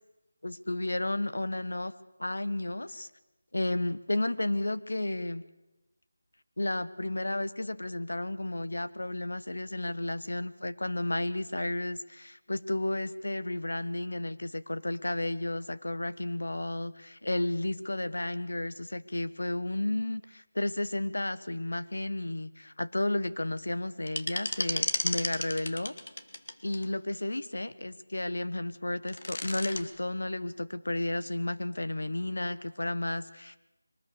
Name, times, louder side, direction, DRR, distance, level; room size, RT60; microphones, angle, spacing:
voice 1, 0.4-1.9 2.2-3.1 3.5-5.4 6.6-25.9 26.6-33.6, left 1 dB, 90° left, 14 dB, 1.3 m, -32 dB
sound 1, 24.1-26.8 28.9-29.8, left 2 dB, 60° left, 2.2 m, -33 dB
23.5 x 20.0 x 6.8 m, 1.0 s
figure-of-eight pair, 170°, 0 cm